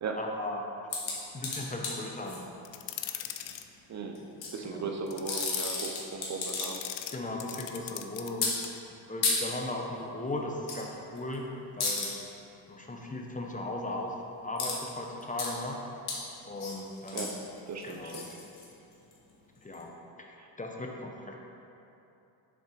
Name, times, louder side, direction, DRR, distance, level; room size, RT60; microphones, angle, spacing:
voice 1, 0.2-0.7 1.3-2.4 4.2-4.3 4.6-4.9 7.1-8.6 9.1-12.1 12.7-15.8 16.5-17.4 17.8-18.2 19.6-21.4, left 2 dB, 15° left, 0 dB, 0.7 m, -37 dB
sound 1, 0.9-2.4 4.2-4.5 5.1-6.9 7.2-7.8 8.4-8.5 9.2-9.4 10.7-10.8 11.2-11.4 11.8-12.1 14.6-14.8 15.1-15.5 16.1-16.2 16.6-19.1 19.7-19.8, left 4 dB, 55° left, 1.5 m, -33 dB
sound 2, 2.6-3.7 5.1-5.8 6.4-8.3 8.6-8.8, left 12 dB, 75° left, 0.6 m, -39 dB
voice 2, 3.9-4.2 4.5-6.8 17.1-17.3 17.7-18.3 20.4-20.5, right 4 dB, 40° right, 3 dB, 0.6 m, -37 dB
6.8 x 3.9 x 4.9 m, 2.8 s
cardioid pair, 90°, 45 cm